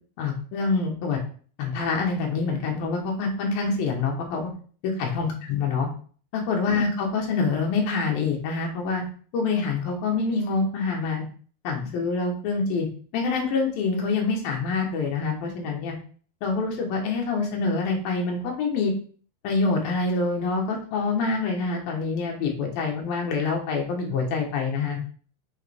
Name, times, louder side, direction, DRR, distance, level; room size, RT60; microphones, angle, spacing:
voice 1, 0.2-1.2 1.6-4.5 4.8-5.9 6.3-9.0 9.3-11.3 11.6-12.9 13.1-15.9 16.4-18.9 19.4-25.0, left 4 dB, 80° left, 1 dB, 3.2 m, -26 dB
7.4 x 4.2 x 3.5 m, 0.43 s
omnidirectional pair, 4.1 m